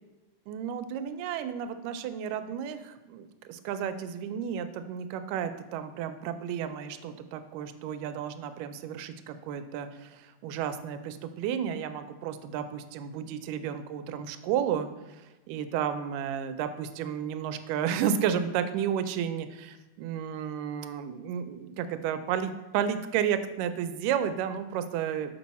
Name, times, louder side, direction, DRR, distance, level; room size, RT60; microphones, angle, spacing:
voice 1, 0.5-25.3, right 8 dB, 90° right, 10 dB, 2.2 m, -32 dB
6.3 x 5.4 x 4.1 m, 1.1 s
omnidirectional pair, 3.7 m